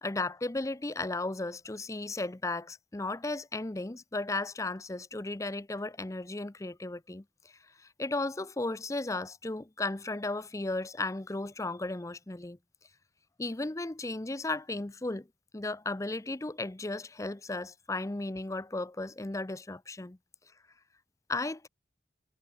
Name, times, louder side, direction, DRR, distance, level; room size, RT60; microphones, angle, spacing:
voice 1, 0.0-7.2 8.0-12.6 13.4-15.3 15.5-20.2 21.3-21.7, left 2 dB, 15° left, 0.6 m, -35 dB
head